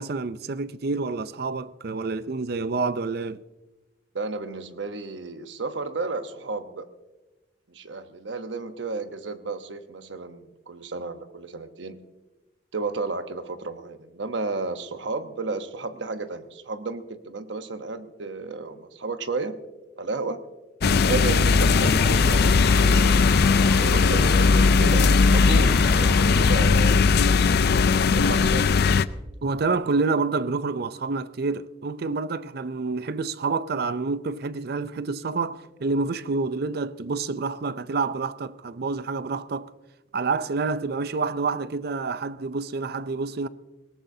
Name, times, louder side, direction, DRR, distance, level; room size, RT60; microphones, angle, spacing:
voice 1, 0.0-3.4 29.4-39.7 40.1-43.5, right 4 dB, 60° right, 0.5 m, -28 dB
voice 2, 4.1-6.9 7.7-12.0 12.7-19.6 20.0-20.4 21.1-23.1 23.7-27.1 28.1-28.8, right 3 dB, 80° right, 1.0 m, -33 dB
sound 1, 20.8-29.0, left 4 dB, 60° left, 0.4 m, -19 dB
sound 2, 20.8-27.3, equal, ahead, 0.6 m, -33 dB
20.5 x 18.0 x 2.7 m
head